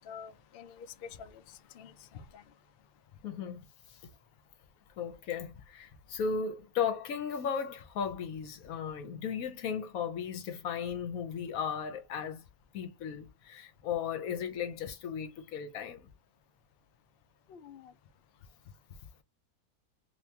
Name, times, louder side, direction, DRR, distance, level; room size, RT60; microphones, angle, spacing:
voice 1, 0.0-2.4 17.5-17.9, left 7 dB, 80° left, 0.5 m, -48 dB
voice 2, 3.2-3.6 5.0-12.4 12.7-16.1, left 7 dB, 65° left, 1.2 m, -36 dB
3.4 x 2.8 x 2.8 m
omnidirectional pair, 1.6 m